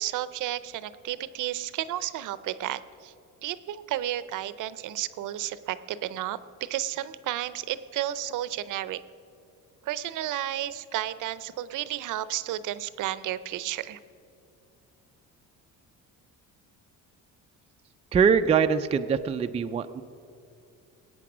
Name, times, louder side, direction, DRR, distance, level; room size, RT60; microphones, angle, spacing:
voice 1, 0.0-3.1 3.4-9.0 9.8-14.0, right 13 dB, 65° right, 16 dB, 0.6 m, -32 dB
voice 2, 18.1-20.0, right 6 dB, 20° right, 8 dB, 0.3 m, -23 dB
20.0 x 8.9 x 6.1 m, 2.5 s
cardioid pair, 140°, 33 cm